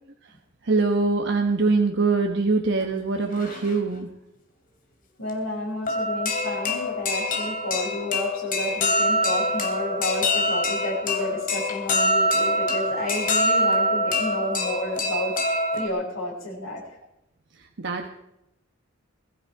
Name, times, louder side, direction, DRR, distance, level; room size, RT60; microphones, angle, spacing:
voice 1, 0.6-4.1 17.5-18.1, right 3 dB, 60° right, 3 dB, 1.2 m, -23 dB
sound 1, 2.8-2.9 3.2-4.0 5.3-5.4 5.9-15.9, left 1 dB, 45° left, 2.8 m, -25 dB
voice 2, 5.2-16.8, left 1 dB, 75° left, -8 dB, 6.1 m, -31 dB
21.5 x 13.0 x 4.7 m, 0.87 s
head